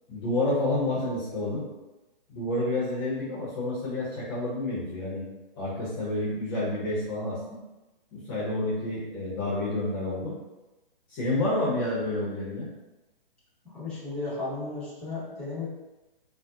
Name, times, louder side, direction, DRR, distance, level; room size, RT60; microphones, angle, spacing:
voice 1, 0.1-1.7 2.3-5.2 5.6-7.6 8.1-10.4 11.1-12.7, left 1 dB, 25° left, -7 dB, 0.8 m, -29 dB
voice 2, 13.6-15.7, left 3 dB, 5° left, -11 dB, 1.2 m, -34 dB
4.1 x 2.1 x 2.5 m, 1.0 s
hypercardioid pair, 145°, 29 cm